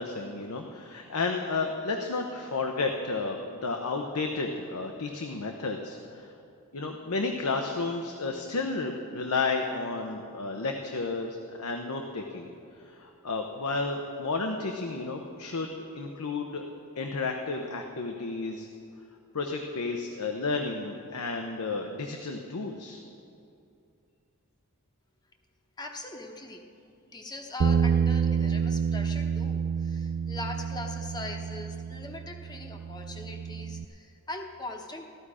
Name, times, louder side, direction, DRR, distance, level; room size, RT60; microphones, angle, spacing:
voice 1, 0.0-6.3 6.7-12.5 12.9-16.6 17.0-18.7 19.3-23.0, left 3 dB, 90° left, 3 dB, 0.8 m, -32 dB
voice 2, 25.8-26.6 27.1-35.0, left 2 dB, 20° left, 3 dB, 1.0 m, -41 dB
Bass guitar, 27.6-33.9, right 6 dB, 55° right, 0.3 m, -28 dB
15.0 x 13.0 x 4.9 m, 2.6 s
head